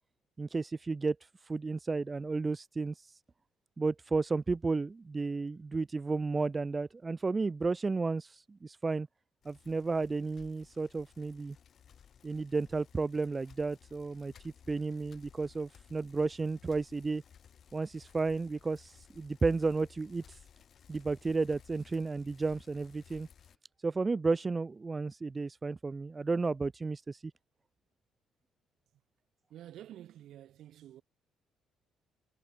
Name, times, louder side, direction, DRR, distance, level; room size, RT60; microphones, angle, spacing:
voice 1, 0.4-3.2 3.8-9.1 9.5-11.6 12.2-17.2 17.7-20.4 20.9-23.3 23.8-27.3, right 3 dB, 30° right, 0.4 m, -33 dB
Bicycle, 9.4-23.6, left 8 dB, 50° left, 2.5 m, -59 dB
voice 2, 29.5-31.0, right 12 dB, 65° right, 1.4 m, -49 dB
hypercardioid pair, 45°, 0 cm